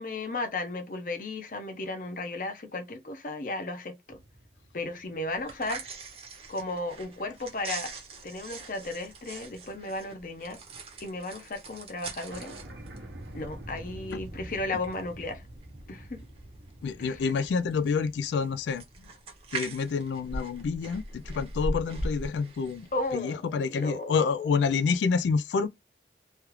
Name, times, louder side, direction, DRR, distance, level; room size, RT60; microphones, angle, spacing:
voice 1, 0.0-4.2 4.7-5.8 6.5-7.9 8.2-10.6 11.0-12.6 13.3-15.4 15.9-16.2 17.0-17.2 22.9-24.5, left 2 dB, 50° left, 0.7 m, -35 dB
sound 1, 4.1-6.7 7.2-7.3 8.8-9.1 9.4-10.8 11.1-11.2 11.4-11.5 11.8-11.9 12.3-19.0, right 1 dB, 85° right, 0.8 m, -47 dB
sound 2, 5.3-23.1, right 2 dB, 35° right, 0.8 m, -41 dB
voice 2, 16.8-18.8 19.5-22.9 23.1-25.7, left 5 dB, 90° left, 0.3 m, -28 dB
3.3 x 2.3 x 3.0 m
head